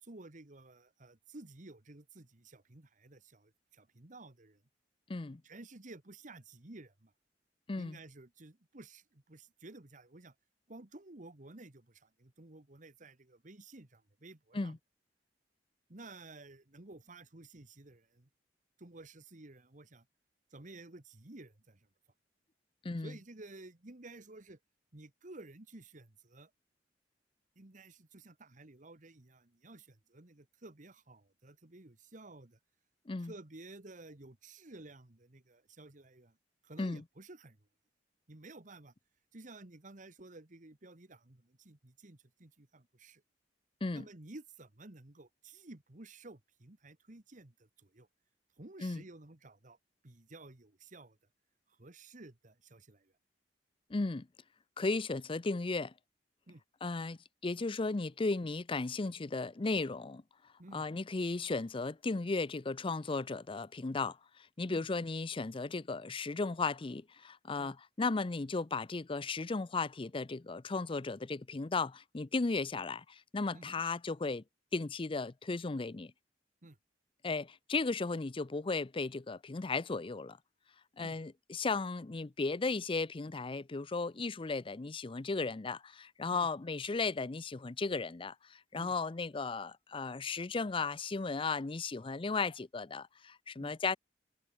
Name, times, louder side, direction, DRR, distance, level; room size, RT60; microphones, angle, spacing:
voice 1, 0.0-4.6 5.4-7.1 7.8-10.3 10.7-14.8 15.9-18.3 18.8-20.0 20.5-21.9 23.0-24.6 24.9-26.5 27.5-32.6 33.2-36.4 36.6-37.6 38.3-38.9 39.3-43.2 43.9-48.1 48.6-49.8 50.0-51.2 51.7-53.1 56.5-56.6 60.6-60.8 64.7-64.9 67.6-67.7 73.5-73.8 76.6-76.8 81.0-81.2 86.3-86.5 88.8-88.9 93.6-93.8, right 2 dB, 45° right, 1.6 m, -53 dB
voice 2, 5.1-5.4 7.7-8.0 14.5-14.8 22.8-23.1 33.1-33.3 36.8-37.0 43.8-44.0 48.8-49.0 53.9-54.3 54.8-55.9 56.8-60.2 60.7-64.2 64.6-74.4 74.7-76.1 77.2-80.4 81.0-94.0, left 3 dB, 30° left, 0.6 m, -35 dB
head